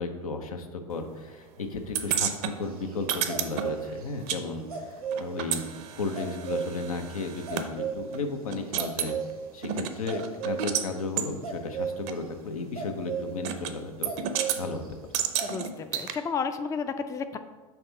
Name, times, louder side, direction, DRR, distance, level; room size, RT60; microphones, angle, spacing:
voice 1, 0.0-4.9 5.2-9.1 9.5-14.1 14.6-14.8, left 3 dB, 85° left, 5 dB, 0.7 m, -34 dB
sound 1, 1.9-4.4 4.7-7.7 8.1-8.2 8.5-9.1 9.6-10.9 11.2-11.3 12.1-12.2 13.4-13.7 14.0-14.6 15.1-16.1, right 9 dB, 55° right, 0.6 m, -31 dB
sound 2, 2.6-4.1 4.7-5.3 6.1-6.8 7.5-8.3 8.6-9.3 9.9-10.7 11.4-12.0 12.8-13.3 14.0-14.9 15.1-15.5, right 7 dB, 90° right, 1.2 m, -33 dB
voice 2, 15.4-17.4, left 5 dB, 15° left, 9 dB, 0.4 m, -32 dB
5.7 x 3.5 x 5.4 m, 1.2 s
hypercardioid pair, 85°, 18 cm